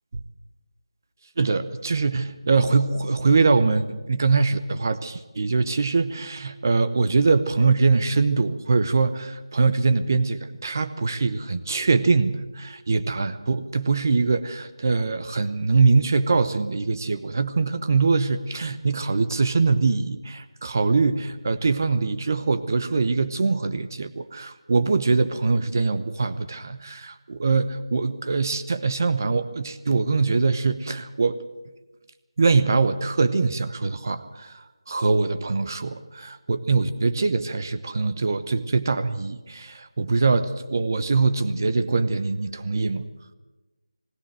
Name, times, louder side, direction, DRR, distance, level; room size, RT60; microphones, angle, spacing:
voice 1, 1.4-31.4 32.4-43.1, right 4 dB, 35° right, 11 dB, 0.9 m, -23 dB
19.5 x 17.5 x 7.6 m, 1.1 s
figure-of-eight pair, 170°, 3 cm